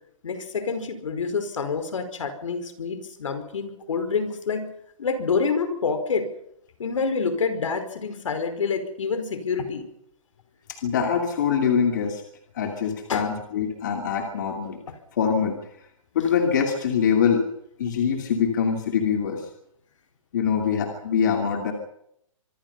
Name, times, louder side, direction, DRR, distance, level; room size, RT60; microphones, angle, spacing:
voice 1, 0.2-4.7 5.0-6.3 6.8-9.9 13.1-13.3 14.9-15.0, left 5 dB, 65° left, 10 dB, 4.9 m, -27 dB
voice 2, 10.7-12.2 12.5-14.8 15.1-15.6 16.1-17.5 17.8-19.5 20.3-21.7, left 7 dB, 35° left, 4 dB, 2.7 m, -24 dB
25.5 x 23.5 x 5.7 m, 0.74 s
hypercardioid pair, 180°, 18 cm